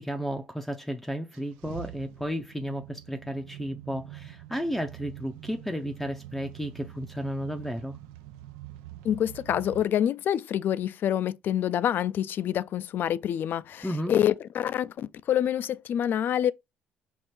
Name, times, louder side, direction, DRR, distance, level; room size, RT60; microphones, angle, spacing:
voice 1, 0.0-8.0 13.8-14.1, equal, 5° left, 0.5 m, -33 dB
sound 1, 1.3-9.9, right 13 dB, 90° right, 0.4 m, -45 dB
voice 2, 9.0-16.5, left 10 dB, 55° left, 0.3 m, -27 dB
4.6 x 2.5 x 4.4 m
supercardioid pair, 80°, 4 cm